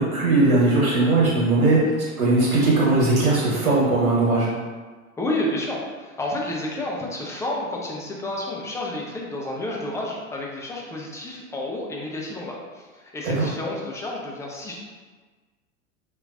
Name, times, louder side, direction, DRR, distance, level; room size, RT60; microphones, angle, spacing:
voice 1, 0.0-1.8 2.2-4.5 13.2-13.4, right 2 dB, 85° right, -7 dB, 1.3 m, -19 dB
voice 2, 5.2-14.8, left 1 dB, 5° left, -2 dB, 0.5 m, -30 dB
4.3 x 2.6 x 2.4 m, 1.4 s
figure-of-eight pair, 85°, 42 cm